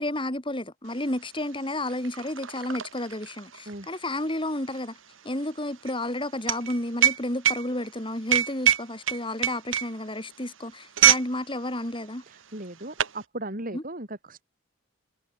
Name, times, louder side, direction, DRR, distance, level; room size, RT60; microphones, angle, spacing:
voice 1, 0.0-4.9 5.2-12.2 13.7-13.8, left 1 dB, 25° left, 5.0 m, -31 dB
sound 1, 1.0-1.1 1.4-11.3 11.6-11.9 12.6-13.2, right 10 dB, 70° right, 1.9 m, -25 dB
voice 2, 12.3-14.4, right 1 dB, 45° right, 5.2 m, -37 dB
head